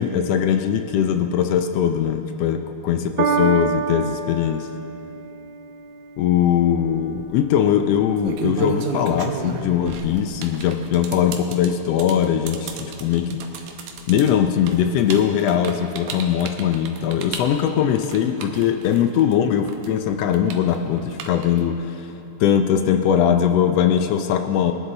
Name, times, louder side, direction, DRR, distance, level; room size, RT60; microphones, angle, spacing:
voice 1, 0.0-4.7 6.2-13.4 14.1-22.1 22.4-24.7, left 9 dB, 80° left, 7 dB, 1.5 m, -20 dB
Piano, 3.2-9.8 10.6-10.7, right 5 dB, 60° right, 1.3 m, -29 dB
sound 1, 6.9-7.2 8.0-19.3 19.7-21.7, right 5 dB, 90° right, 2.4 m, -32 dB
21.5 x 10.0 x 3.9 m, 2.8 s
omnidirectional pair, 3.4 m